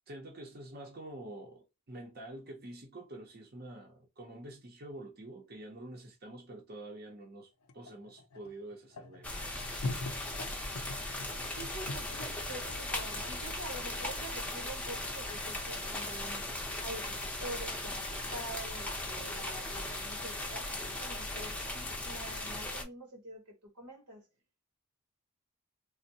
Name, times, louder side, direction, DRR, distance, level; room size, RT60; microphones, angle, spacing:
voice 1, 0.1-9.3, right 1 dB, 45° right, 0.6 m, -47 dB
sound 1, 7.6-12.3 12.8-13.0 13.7-13.8 14.1-18.9, left 2 dB, 85° left, 0.5 m, -44 dB
sound 2, 9.2-22.8, left 1 dB, 5° left, 0.5 m, -38 dB
voice 2, 11.5-16.5 16.8-24.3, right 1 dB, 85° right, 1.0 m, -46 dB
3.4 x 2.0 x 2.6 m
head